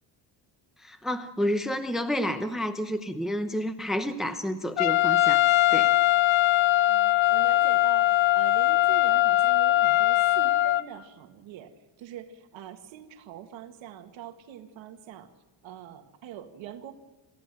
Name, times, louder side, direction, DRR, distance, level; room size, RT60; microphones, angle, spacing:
voice 1, 0.8-5.9, equal, ahead, 7 dB, 0.9 m, -30 dB
Trumpet, 4.8-10.8, left 16 dB, 75° left, 0.8 m, -21 dB
voice 2, 6.9-11.7 12.0-15.3 15.6-16.9, right 10 dB, 80° right, 5 dB, 2.2 m, -43 dB
28.5 x 15.0 x 7.8 m, 1.2 s
cardioid pair, 175°, 46 cm